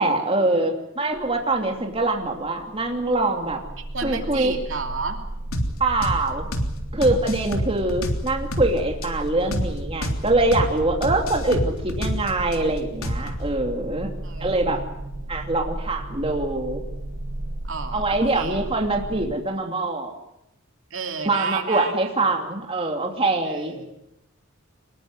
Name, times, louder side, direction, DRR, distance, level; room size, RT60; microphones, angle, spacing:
voice 1, 0.0-3.6 4.0-4.6 5.8-6.5 6.9-14.1 14.4-14.8 15.3-16.8 17.9-20.1 21.2-23.7, right 2 dB, 25° right, 2 dB, 2.8 m, -24 dB
sound 1, 1.1-19.3, right 1 dB, 85° right, 1.8 m, -35 dB
voice 2, 3.9-5.2 14.2-14.8 17.6-18.6 20.9-21.9 23.4-23.9, right 4 dB, 65° right, 4 dB, 2.9 m, -32 dB
sound 2, 5.5-5.7 6.0-6.2 6.5-6.7 7.0-8.7 9.0-9.1 9.5-9.7 10.0-10.2 10.5-10.7 11.0-12.6 13.0-13.4, equal, 85° left, 3.3 m, -26 dB
24.5 x 21.0 x 8.0 m, 0.84 s
head